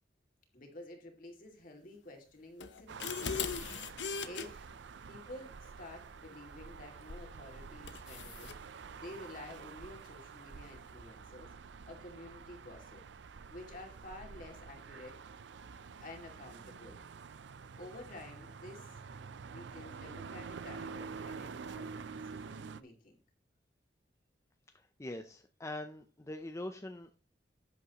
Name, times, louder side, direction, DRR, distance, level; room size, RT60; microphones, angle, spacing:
voice 1, 0.5-3.3 4.2-4.7 5.1-8.5 9.0-11.5 11.9-13.0 13.5-15.2 16.0-17.0 17.8-19.0 19.5-23.2, left 1 dB, 50° left, 2 dB, 2.4 m, -51 dB
sound 1, 2.6-4.5 7.1-7.3 7.9-8.6, left 6 dB, 75° left, 0.8 m, -39 dB
sound 2, 2.9-22.8, right 5 dB, 75° right, 0.5 m, -48 dB
voice 2, 24.7-27.2, left 1 dB, 15° left, 6 dB, 0.5 m, -43 dB
11.0 x 8.3 x 3.0 m, 0.38 s
head